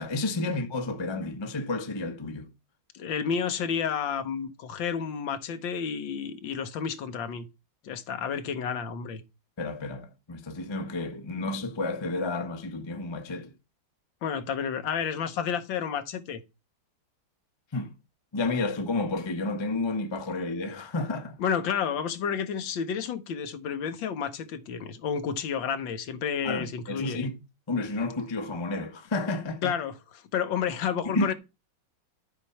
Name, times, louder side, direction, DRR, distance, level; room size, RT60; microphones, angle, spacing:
voice 1, 0.0-2.5 9.6-13.5 17.7-17.9 18.3-21.4 26.4-27.4 27.7-29.7 31.0-31.3, left 2 dB, 25° left, 0.5 m, -31 dB
voice 2, 2.9-7.5 7.8-9.2 14.2-16.4 21.4-27.2 29.6-29.9 30.3-31.3, left 7 dB, 65° left, 1.6 m, -30 dB
12.0 x 4.3 x 5.6 m
omnidirectional pair, 2.3 m